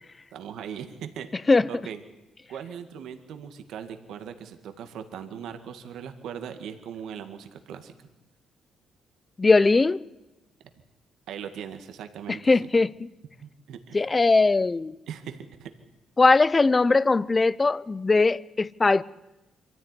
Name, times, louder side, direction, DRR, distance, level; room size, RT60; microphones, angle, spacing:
voice 1, 0.3-1.3 1.7-2.0 2.5-7.9 11.3-12.5 13.4-14.0 15.1-15.7, right 8 dB, 75° right, 2.0 m, -39 dB
voice 2, 9.4-10.0 12.3-13.1 13.9-14.9 16.2-19.0, left 3 dB, 25° left, 0.7 m, -20 dB
24.0 x 15.0 x 9.9 m
cardioid pair, 80°, 0 cm